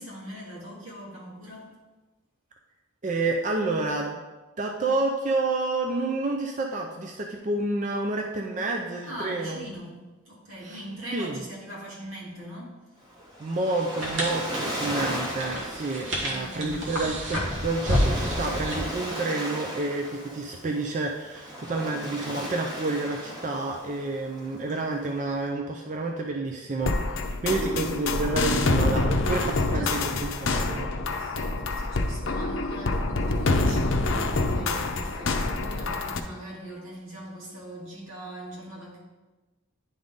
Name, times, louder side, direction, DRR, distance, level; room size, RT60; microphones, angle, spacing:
voice 1, 0.0-1.7 9.0-12.8 16.0-16.9 27.2-27.8 29.5-30.1 31.2-39.0, equal, 85° right, -4 dB, 2.2 m, -41 dB
voice 2, 3.0-4.2 4.6-9.6 10.6-10.8 11.1-11.4 13.4-26.9 27.4-30.9, right 2 dB, 35° right, 2 dB, 0.4 m, -29 dB
Waves surf, 13.0-25.4, equal, 20° right, 1.1 m, -36 dB
sound 1, 13.9-18.9, equal, 65° right, 1.6 m, -29 dB
sound 2, 26.8-36.2, left 2 dB, 75° left, 0.6 m, -26 dB
9.9 x 3.9 x 3.6 m, 1.2 s
head